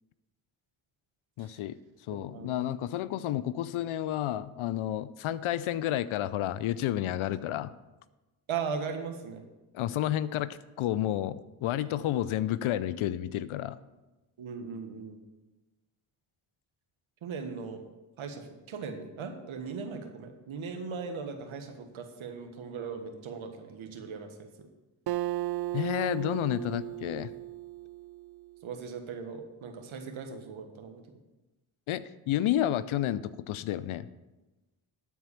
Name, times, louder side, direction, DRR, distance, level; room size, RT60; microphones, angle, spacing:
voice 1, 1.4-1.8 2.1-7.7 9.7-13.8 25.7-27.3 31.9-34.1, left 12 dB, 75° left, 16 dB, 0.6 m, -31 dB
voice 2, 2.1-2.6 8.5-9.4 14.4-15.2 17.2-17.9 18.2-24.7 28.6-31.0, right 5 dB, 70° right, 5 dB, 1.5 m, -38 dB
Acoustic guitar, 25.1-28.6, right 15 dB, 50° right, 0.5 m, -35 dB
12.5 x 4.6 x 7.1 m, 1.1 s
supercardioid pair, 45°, 49 cm